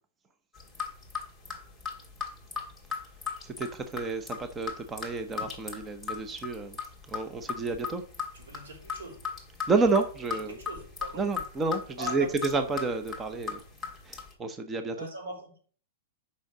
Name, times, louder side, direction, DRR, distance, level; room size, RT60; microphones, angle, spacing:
sound 1, 0.5-14.3, left 6 dB, ahead, 2.3 m, -38 dB
voice 1, 3.4-6.8 7.1-8.0 9.7-10.6 11.1-13.6 14.0-15.0, right 3 dB, 15° right, 0.8 m, -30 dB
voice 2, 8.3-9.3 10.5-11.3 12.0-12.6 14.9-15.6, right 1 dB, 85° right, 4.5 m, -42 dB
6.3 x 5.6 x 6.5 m
hypercardioid pair, 145°, 0 cm